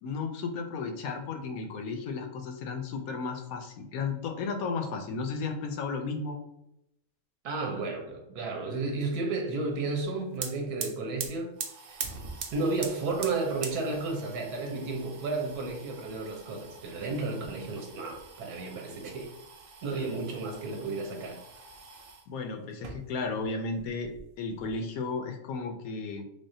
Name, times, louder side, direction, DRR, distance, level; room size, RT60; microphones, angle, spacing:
voice 1, 0.0-6.4 19.9-20.0 22.3-26.2, left 4 dB, 75° left, 5 dB, 1.0 m, -34 dB
voice 2, 7.4-11.5 11.9-12.0 12.5-19.3 19.8-21.4, right 3 dB, 90° right, 2 dB, 1.4 m, -32 dB
sound 1, 10.0-10.1 10.3-22.3 22.7-23.5 23.7-24.7, right 5 dB, 70° right, 0.5 m, -43 dB
3.5 x 3.4 x 2.7 m, 0.82 s
omnidirectional pair, 1.6 m